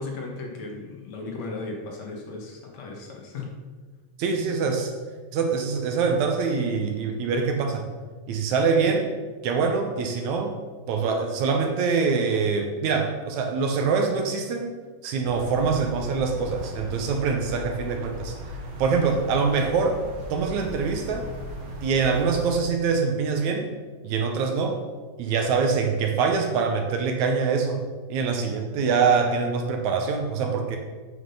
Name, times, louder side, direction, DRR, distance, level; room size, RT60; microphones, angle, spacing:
voice 1, 0.0-3.5, left 3 dB, 60° left, 0 dB, 2.5 m, -36 dB
voice 2, 4.2-4.9 5.3-7.9 8.3-9.1 9.4-10.5 10.9-14.7 15.0-18.4 18.8-20.0 20.3-21.3 21.8-23.7 24.0-24.8 25.2-27.8 28.1-30.8, right 5 dB, 70° right, 4 dB, 2.0 m, -24 dB
sound 1, 15.2-22.5, left 1 dB, 50° right, 2.0 m, -38 dB
9.2 x 6.3 x 5.4 m, 1.4 s
omnidirectional pair, 3.7 m